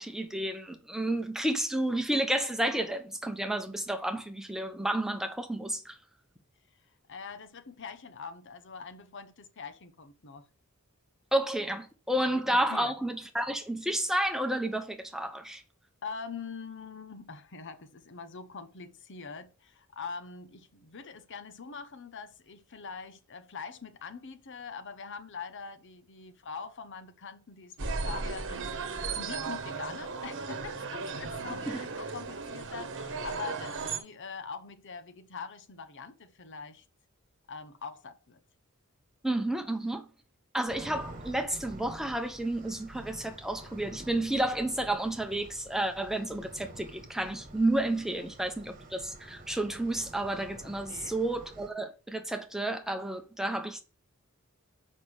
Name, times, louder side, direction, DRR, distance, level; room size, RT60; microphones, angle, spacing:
voice 1, 0.0-5.9 11.3-15.6 31.7-31.8 39.2-40.0 40.5-53.8, right 1 dB, ahead, 1.0 m, -31 dB
voice 2, 7.1-10.4 12.3-12.9 16.0-36.8 37.5-38.4 50.9-51.2, left 5 dB, 60° left, 0.9 m, -43 dB
sound 1, 27.8-34.0, right 4 dB, 60° right, 1.1 m, -36 dB
sound 2, 40.7-51.7, right 1 dB, 40° right, 1.4 m, -48 dB
6.9 x 5.5 x 6.4 m
head